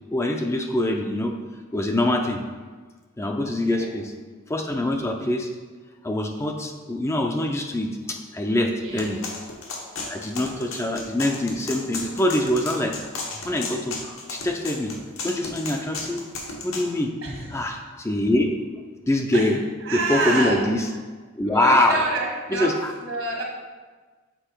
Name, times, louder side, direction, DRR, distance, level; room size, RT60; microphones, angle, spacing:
voice 1, 0.1-1.4 1.7-2.4 3.2-4.1 4.5-5.5 6.0-9.2 10.1-12.9 13.4-14.9 15.2-16.2 16.6-17.1 17.5-18.5 19.1-19.6 19.9-20.9 21.4-22.0 22.5-22.9, left 1 dB, 15° left, 3 dB, 0.4 m, -24 dB
voice 2, 3.5-3.9 8.7-9.2 17.2-17.5 19.3-19.5 19.8-20.6 21.4-22.7 23.0-23.4, right 3 dB, 75° right, -1 dB, 1.7 m, -28 dB
sound 1, 9.0-16.9, left 3 dB, 80° left, 1.2 m, -34 dB
6.8 x 4.4 x 4.5 m, 1.4 s
head